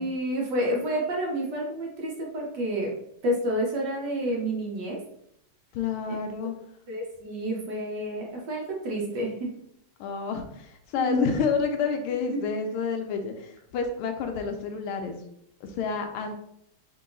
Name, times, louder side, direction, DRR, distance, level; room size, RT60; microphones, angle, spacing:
voice 1, 0.0-2.9 3.2-5.0 6.9-9.5 11.0-11.4 12.3-12.4, equal, 60° right, -2 dB, 1.4 m, -29 dB
voice 2, 5.7-6.5 10.0-15.2 15.6-16.3, left 5 dB, 85° left, 5 dB, 1.5 m, -29 dB
3.8 x 2.8 x 3.8 m, 0.75 s
omnidirectional pair, 2.4 m